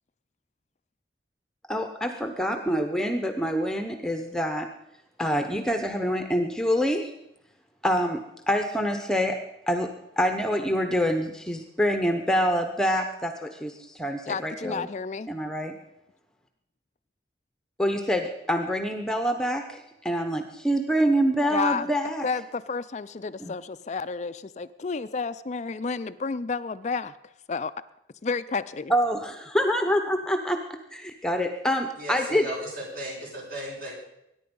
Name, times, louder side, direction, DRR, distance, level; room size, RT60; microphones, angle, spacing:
voice 1, 1.7-4.7 5.2-7.1 7.8-9.4 9.7-9.9 10.2-14.9 15.3-15.7 17.8-22.3 23.4-23.5 28.9-30.6 30.9-32.5, equal, 5° left, 6 dB, 0.9 m, -26 dB
voice 2, 14.3-15.3 21.5-21.9 22.2-27.1 27.5-27.7 28.2-28.9, left 4 dB, 40° left, 13 dB, 0.4 m, -31 dB
voice 3, 31.9-33.9, right 1 dB, 50° right, -3 dB, 7.0 m, -36 dB
22.0 x 10.5 x 5.4 m, 0.85 s
head